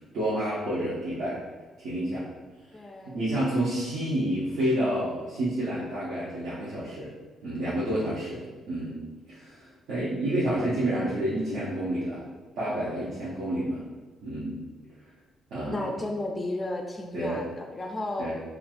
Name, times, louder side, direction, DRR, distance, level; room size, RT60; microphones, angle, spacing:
voice 1, 0.1-1.4 1.8-2.3 3.1-7.1 7.4-9.0 9.3-12.3 12.6-13.8 14.2-14.6 15.5-15.8 17.1-17.4 18.2-18.3, right 1 dB, 80° right, -9 dB, 0.8 m, -29 dB
voice 2, 2.7-3.2 15.7-18.3, left 2 dB, 25° left, 2 dB, 0.3 m, -33 dB
3.1 x 2.4 x 2.5 m, 1.3 s
cardioid pair, 90°, 0 cm